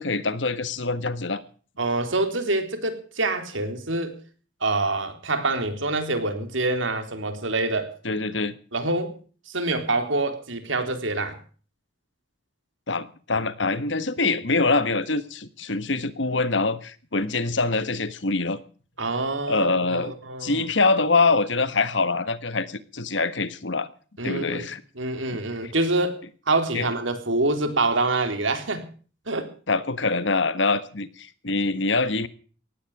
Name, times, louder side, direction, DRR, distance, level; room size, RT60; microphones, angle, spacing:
voice 1, 0.0-1.4 8.0-8.5 12.9-18.6 19.5-20.1 20.4-23.9 24.2-24.8 25.6-25.7 26.7-26.9 29.7-32.3, left 3 dB, 70° left, 14 dB, 1.5 m, -24 dB
voice 2, 1.8-4.2 4.6-7.9 8.7-9.2 9.5-11.4 19.0-20.7 24.2-24.7 25.0-28.9 29.3-29.5, right 2 dB, 90° right, 7 dB, 3.6 m, -26 dB
18.5 x 15.0 x 4.8 m, 0.41 s
head